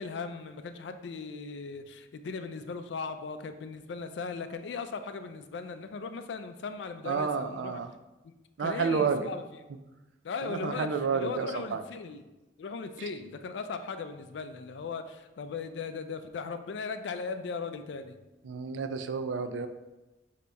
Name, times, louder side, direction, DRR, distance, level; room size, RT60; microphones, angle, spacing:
voice 1, 0.0-7.8 8.2-8.3 8.6-9.4 10.2-10.9 11.1-12.2 12.6-18.2, left 4 dB, 75° left, 9 dB, 0.4 m, -38 dB
voice 2, 7.1-7.9 8.6-9.3 10.4-11.8 13.0-13.1 18.4-19.7, right 5 dB, 85° right, 9 dB, 0.4 m, -30 dB
5.1 x 2.8 x 3.4 m, 1.0 s
head